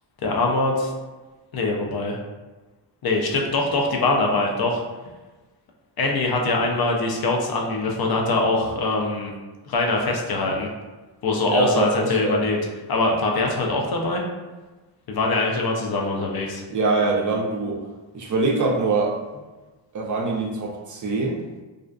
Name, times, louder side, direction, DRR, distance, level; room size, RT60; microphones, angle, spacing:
voice 1, 0.2-0.9 1.5-2.2 3.0-4.8 6.0-9.3 9.7-10.7 11.2-12.6 12.9-14.2 15.1-16.6, left 2 dB, 55° left, 0 dB, 0.5 m, -23 dB
voice 2, 11.5-12.4 16.7-17.8 18.1-19.1 19.9-21.4, right 3 dB, 45° right, -1 dB, 0.4 m, -23 dB
2.4 x 2.3 x 2.2 m, 1.2 s
cardioid pair, 85°, 44 cm